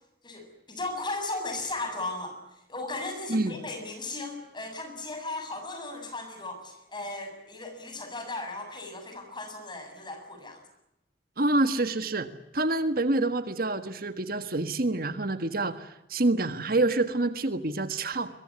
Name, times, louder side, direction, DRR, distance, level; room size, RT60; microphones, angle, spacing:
voice 1, 0.2-2.4 2.7-10.6, left 2 dB, 25° left, 6 dB, 7.2 m, -36 dB
voice 2, 11.4-12.3 12.5-18.3, right 2 dB, 55° right, 10 dB, 1.5 m, -27 dB
23.0 x 22.5 x 9.7 m, 0.88 s
head